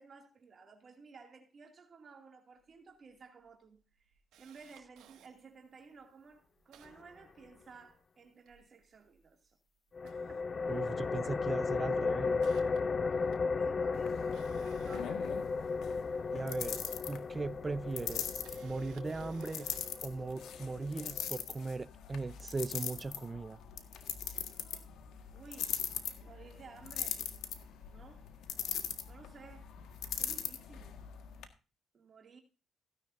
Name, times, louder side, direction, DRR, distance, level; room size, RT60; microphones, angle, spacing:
voice 1, 0.0-9.6 10.0-10.5 12.8-15.4 25.3-25.8 26.2-27.3 27.9-28.3 29.1-29.7 30.2-31.0 31.9-32.4, right 5 dB, 45° right, 2.5 m, -56 dB
Camera, 2.7-2.8 3.1-3.2 3.6-5.3 5.9-6.0 6.3-7.9 8.2-9.5 9.9-11.0 11.3-11.6 12.0-16.0 17.1-17.2 18.2-20.0 20.5-20.7, right 10 dB, 90° right, 1.9 m, -61 dB
sound 1, 9.9-21.3, left 4 dB, 40° left, 0.5 m, -35 dB
voice 2, 10.7-12.4 16.3-16.8 17.1-19.7 20.0-23.6, right 3 dB, 25° right, 0.7 m, -38 dB
sound 2, 13.9-31.5, left 9 dB, 80° left, 1.7 m, -41 dB
16.0 x 10.5 x 2.7 m
cardioid pair, 90°, 0 cm